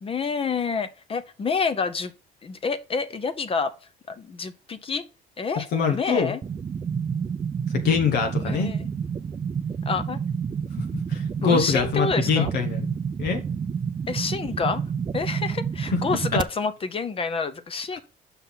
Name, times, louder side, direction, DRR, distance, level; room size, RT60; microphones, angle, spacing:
voice 1, 0.0-2.1 2.4-3.7 4.1-5.0 5.4-6.4 8.4-8.9 9.9-10.2 11.4-12.5 14.1-14.8 15.1-18.0, left 5 dB, 35° left, 0.8 m, -28 dB
voice 2, 5.7-6.3 7.7-8.7 11.1-12.9 13.2-13.4 15.9-16.0 16.3-16.4, left 6 dB, 75° left, 1.1 m, -24 dB
sound 1, 6.4-16.4, right 6 dB, 30° right, 0.5 m, -29 dB
5.7 x 5.6 x 5.6 m
cardioid pair, 110°, 17 cm